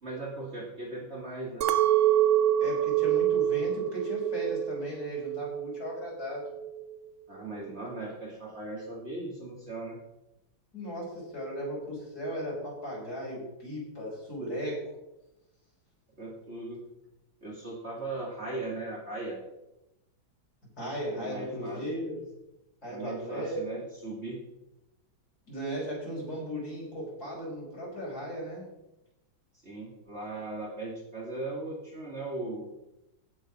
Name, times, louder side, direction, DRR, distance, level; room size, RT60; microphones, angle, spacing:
voice 1, 0.0-1.7 7.3-10.0 16.2-16.8 17.4-19.4 21.1-21.8 22.8-24.4 29.6-32.7, right 2 dB, 35° right, -2 dB, 2.6 m, -38 dB
Chink clink, 1.6-6.0 6.3-7.0, right 11 dB, 85° right, 0.6 m, -26 dB
voice 2, 2.6-6.4 10.7-14.8 20.8-22.2 22.8-23.6 25.5-28.6, equal, 50° left, -4 dB, 6.2 m, -36 dB
16.0 x 6.6 x 6.1 m, 0.93 s
omnidirectional pair, 2.2 m